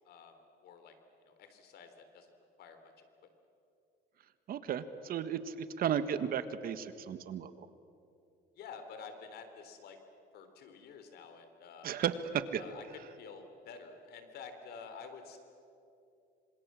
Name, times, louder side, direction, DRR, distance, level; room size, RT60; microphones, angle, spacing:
voice 1, 0.0-1.0 1.2-2.3 2.6-3.3 8.6-10.0 10.3-12.0 12.6-15.4, left 5 dB, 70° left, 8 dB, 3.6 m, -50 dB
voice 2, 4.5-7.7 11.8-12.6, right 8 dB, 60° right, 11 dB, 1.5 m, -34 dB
26.5 x 26.0 x 7.6 m, 2.7 s
cardioid pair, 110°, 17 cm